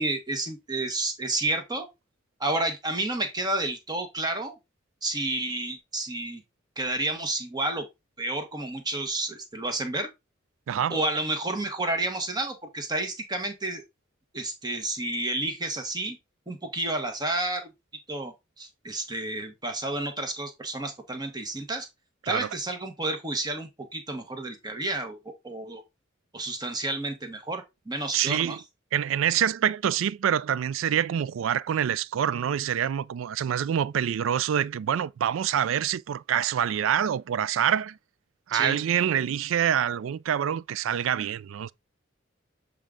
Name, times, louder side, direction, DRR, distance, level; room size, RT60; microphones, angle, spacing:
voice 1, 0.0-1.9 2.4-4.6 5.0-6.4 6.8-7.9 8.2-10.1 10.9-13.8 14.3-16.2 16.5-17.7 18.1-21.9 22.2-25.8 26.3-28.6 38.5-38.8, right 2 dB, 20° right, 1.1 m, -30 dB
voice 2, 10.7-11.0 22.2-22.5 28.1-28.6 28.9-38.0 38.5-41.7, right 9 dB, 75° right, 0.3 m, -26 dB
7.5 x 3.6 x 3.7 m
head